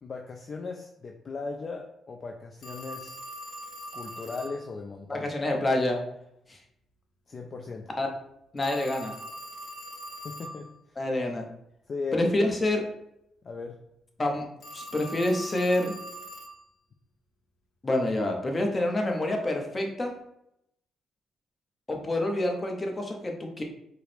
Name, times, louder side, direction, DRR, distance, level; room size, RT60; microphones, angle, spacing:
voice 1, 0.0-3.2 3.9-5.3 7.3-7.9 10.2-11.0 11.9-12.5 13.4-13.8, left 4 dB, 40° left, 2 dB, 0.3 m, -37 dB
Telephone, 2.6-4.6 8.6-10.6 14.6-16.6, right 1 dB, 60° left, 0.8 m, -42 dB
voice 2, 5.1-6.0 6.5-6.6 8.0-8.1 8.5-9.1 11.0-11.5 12.1-12.8 14.2-14.4 14.7-15.9 17.8-20.1 21.9-23.6, left 1 dB, 25° left, 2 dB, 0.7 m, -27 dB
4.6 x 2.0 x 3.2 m, 0.80 s
cardioid pair, 90°, 0 cm